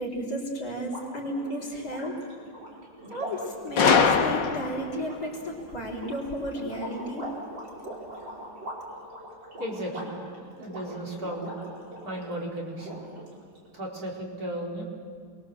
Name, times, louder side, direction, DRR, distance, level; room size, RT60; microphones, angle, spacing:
voice 1, 0.0-2.2 3.1-7.3, equal, 45° left, -3 dB, 5.1 m, -33 dB
sound 1, 0.8-12.4 12.7-13.6, right 1 dB, 70° right, 6.1 m, -42 dB
Gunshot gunfire, 3.8-5.0, left 6 dB, 65° left, 2.0 m, -22 dB
voice 2, 9.6-10.2 10.6-11.5 12.0-13.0 13.7-14.8, right 1 dB, 50° right, -3 dB, 4.8 m, -35 dB
28.0 x 23.0 x 7.6 m, 2.2 s
omnidirectional pair, 2.1 m